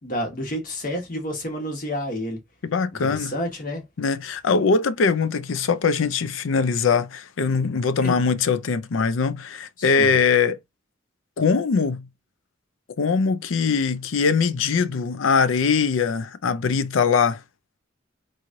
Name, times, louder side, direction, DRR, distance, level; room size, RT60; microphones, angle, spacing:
voice 1, 0.0-2.4 3.0-3.8 8.0-8.1 9.8-10.2, equal, 45° left, 1.2 m, -29 dB
voice 2, 2.6-3.3 4.0-10.6 11.4-12.1 13.0-17.4, left 5 dB, 80° left, 0.5 m, -22 dB
3.8 x 3.1 x 2.6 m
head